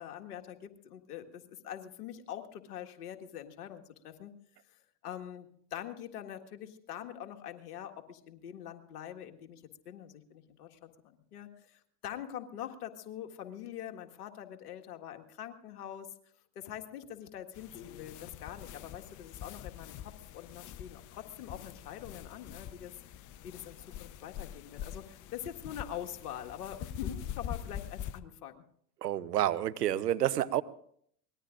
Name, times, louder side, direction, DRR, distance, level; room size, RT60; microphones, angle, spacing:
voice 1, 0.0-4.3 4.7-16.1 16.6-22.9 23.4-28.6, left 10 dB, 75° left, 5 dB, 1.8 m, -44 dB
Make up brush on skin, 17.5-28.2, left 10 dB, 40° left, 0.9 m, -44 dB
voice 2, 29.0-30.6, right 12 dB, 85° right, 15 dB, 0.9 m, -29 dB
24.0 x 20.0 x 2.6 m, 0.64 s
hypercardioid pair, 85°, 47 cm